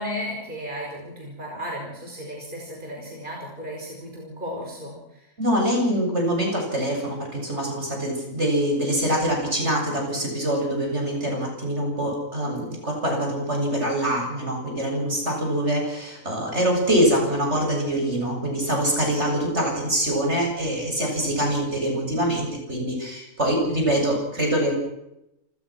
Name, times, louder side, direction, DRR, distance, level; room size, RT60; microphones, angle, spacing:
voice 1, 0.0-4.9 19.1-19.3, equal, 35° right, -1 dB, 6.2 m, -34 dB
voice 2, 5.4-24.7, right 1 dB, 55° right, 2 dB, 7.9 m, -24 dB
29.0 x 20.5 x 6.2 m, 0.87 s
omnidirectional pair, 1.4 m